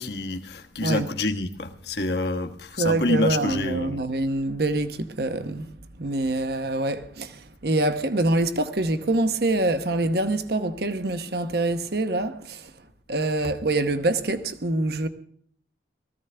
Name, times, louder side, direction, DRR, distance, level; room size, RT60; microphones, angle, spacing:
voice 1, 0.0-4.0, left 2 dB, 60° left, 1.2 m, -27 dB
voice 2, 2.8-12.7 13.1-15.1, right 2 dB, 55° right, 1.0 m, -25 dB
20.0 x 15.0 x 3.4 m
head